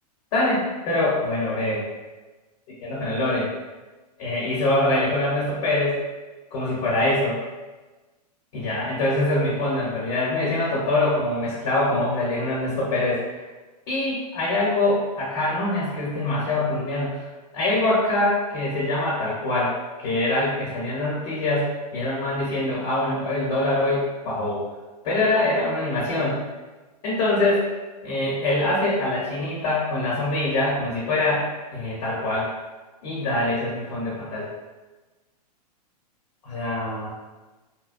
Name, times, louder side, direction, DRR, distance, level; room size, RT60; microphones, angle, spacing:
voice 1, 0.3-1.9 2.8-3.5 4.2-6.0 6.5-7.4 8.5-13.4 13.9-24.7 25.0-26.4 27.0-27.7 28.0-32.5 33.0-34.5 36.4-37.1, left 2 dB, 55° left, -6 dB, 1.0 m, -24 dB
2.3 x 2.1 x 2.5 m, 1.2 s
hypercardioid pair, 130°, 21 cm